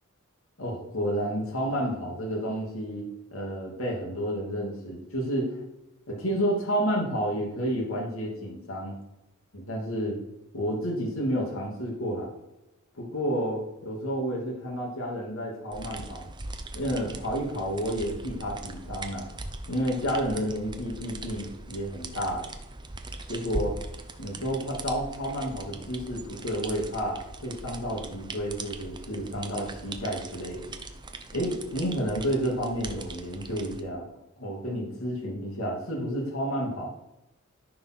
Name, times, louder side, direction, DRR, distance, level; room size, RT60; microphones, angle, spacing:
voice 1, 0.6-3.0 3.3-5.6 6.1-9.0 9.5-10.2 10.5-12.3 13.0-16.2 16.7-19.2 19.7-22.5 23.3-23.7 24.2-30.7 31.3-34.0 34.4-36.9, equal, 70° left, -2 dB, 2.6 m, -30 dB
sound 1, 15.7-33.8, right 2 dB, 20° right, 0.8 m, -40 dB
13.5 x 4.6 x 6.1 m, 0.94 s
head